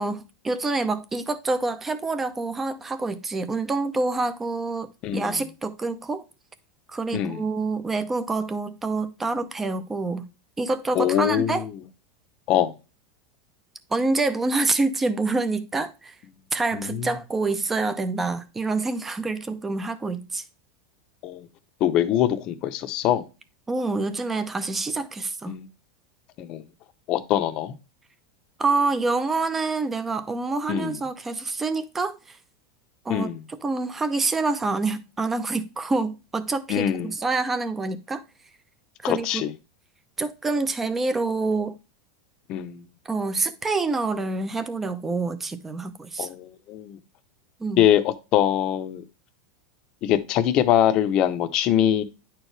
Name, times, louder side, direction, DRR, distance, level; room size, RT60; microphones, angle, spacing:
voice 1, 0.0-6.2 6.9-10.3 10.6-11.7 13.9-16.1 16.5-20.4 23.7-25.6 28.6-32.4 33.0-33.3 33.6-38.2 39.0-39.4 40.2-41.8 43.0-46.3 47.6-47.8, right 3 dB, 10° right, 0.6 m, -27 dB
voice 2, 5.0-5.4 7.1-7.4 10.9-11.8 12.5-12.7 16.7-17.1 21.2-21.5 21.8-23.3 25.5-25.7 26.4-26.6 27.1-27.8 30.7-31.0 33.1-33.4 36.7-37.1 39.0-39.5 42.5-42.9 46.2-47.0 47.8-49.0 50.0-52.0, left 11 dB, 35° left, 0.8 m, -23 dB
10.0 x 4.6 x 3.3 m
supercardioid pair, 165°, 2 cm